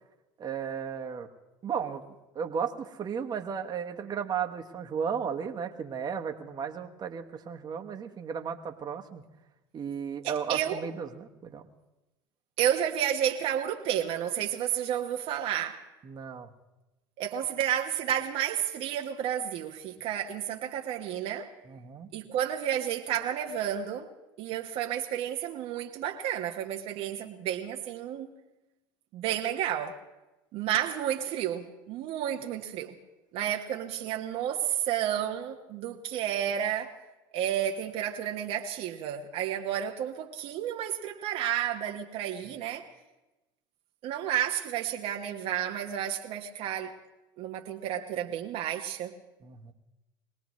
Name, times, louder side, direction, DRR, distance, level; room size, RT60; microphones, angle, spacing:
voice 1, 0.4-1.3 1.6-2.0 2.3-9.2 9.7-11.6 16.0-16.5 21.7-22.1 49.4-49.7, right 7 dB, 40° right, 4 dB, 1.3 m, -34 dB
voice 2, 10.2-10.8 12.6-15.8 17.2-21.5 22.1-24.1 24.4-28.3 29.1-30.0 30.5-32.9 33.3-36.9 37.3-42.8 44.0-46.9 47.4-49.1, right 10 dB, 60° right, 2 dB, 1.1 m, -31 dB
23.0 x 18.0 x 3.1 m, 1.0 s
hypercardioid pair, 85°, 11 cm